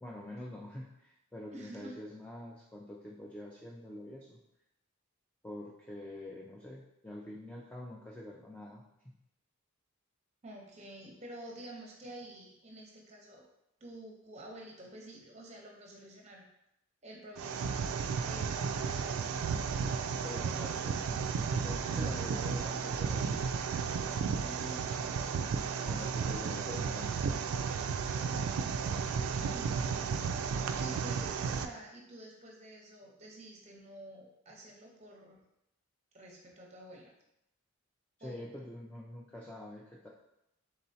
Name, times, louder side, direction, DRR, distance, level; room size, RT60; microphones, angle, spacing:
voice 1, 0.0-4.4 5.4-9.1 20.2-21.0 21.5-23.7 25.8-27.1 38.2-40.1, left 1 dB, 5° left, -3 dB, 0.3 m, -46 dB
voice 2, 1.5-2.0 10.4-13.4 13.8-16.5 17.0-17.8 18.2-19.5 21.9-22.1 24.4-25.3 26.5-26.7 29.5-30.1 30.7-35.4 36.1-37.1 38.2-38.4, right 1 dB, 30° right, 0 dB, 0.7 m, -49 dB
sound 1, 17.4-31.7, right 6 dB, 75° right, 0.3 m, -33 dB
4.2 x 3.8 x 2.7 m, 0.82 s
head